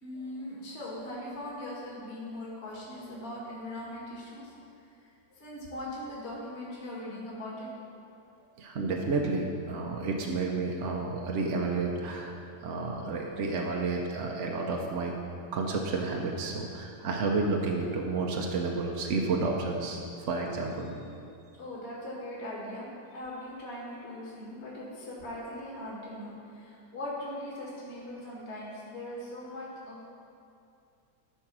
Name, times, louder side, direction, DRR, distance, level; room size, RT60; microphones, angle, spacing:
voice 1, 0.0-4.5 5.4-7.7 20.7-21.1 21.6-22.9 23.1-30.0, left 1 dB, 35° left, -5 dB, 2.0 m, -40 dB
voice 2, 8.6-12.4 12.6-15.1 15.5-20.0 20.3-20.9, right 3 dB, 55° right, 0 dB, 0.8 m, -31 dB
12.5 x 4.5 x 6.1 m, 2.5 s
omnidirectional pair, 2.1 m